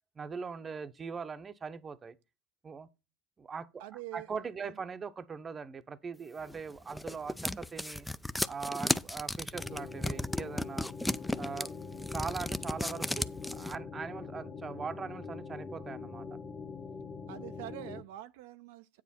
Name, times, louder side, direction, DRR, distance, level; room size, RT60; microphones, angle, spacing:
voice 1, 0.2-2.1 2.6-2.9 3.4-3.8 4.1-8.1 8.5-10.9 11.4-11.7 12.1-16.3, right 5 dB, 25° right, 0.8 m, -41 dB
voice 2, 3.8-4.3 4.6-4.8 17.3-19.0, right 15 dB, 70° right, 0.5 m, -45 dB
sound 1, 6.5-13.8, left 1 dB, 5° left, 0.4 m, -34 dB
sound 2, 9.5-18.0, left 5 dB, 25° left, 1.3 m, -43 dB
8.9 x 7.4 x 4.2 m
hypercardioid pair, 105°, 0 cm